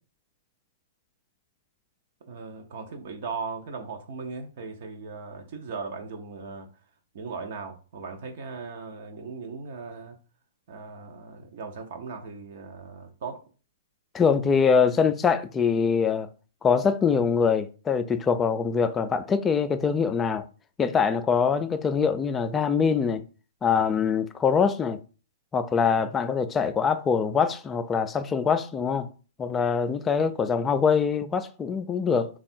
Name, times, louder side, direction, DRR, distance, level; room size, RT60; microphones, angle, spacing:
voice 1, 2.3-6.7 7.1-10.2 10.7-13.4, right 4 dB, 50° right, 0.7 m, -38 dB
voice 2, 14.1-16.3 16.6-20.4 20.8-23.2 23.6-25.0 25.5-29.1 29.4-32.3, left 6 dB, 15° left, 0.3 m, -23 dB
3.3 x 2.3 x 4.3 m
figure-of-eight pair, 115°, 0 cm